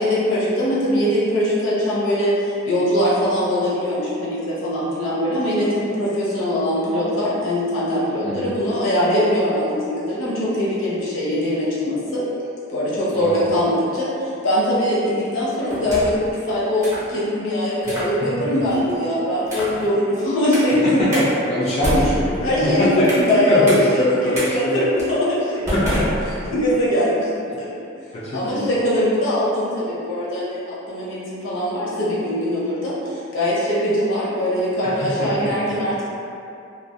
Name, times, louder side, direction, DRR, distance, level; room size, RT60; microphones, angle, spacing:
voice 1, 0.0-2.3 2.7-12.2 12.7-14.1 14.4-21.2 22.4-24.0 24.4-26.0 26.5-27.8 28.3-36.0, left 1 dB, 75° left, -8 dB, 0.8 m, -21 dB
voice 2, 13.1-13.5 17.8-17.9 19.7-19.8 20.8-23.1 23.5-24.8 25.7-26.2 28.1-28.7 34.8-35.7, left 1 dB, 35° left, -9 dB, 0.4 m, -23 dB
sound 1, 15.7-16.3 16.8-17.1 17.8-18.1 18.7-19.0 19.4-19.8 20.5-20.7 21.1-21.3 21.7-23.3 23.7-23.8 24.3-24.5 25.0-25.1 25.7-26.7, equal, 15° right, 0.7 m, -27 dB
2.4 x 2.3 x 2.5 m, 2.6 s
head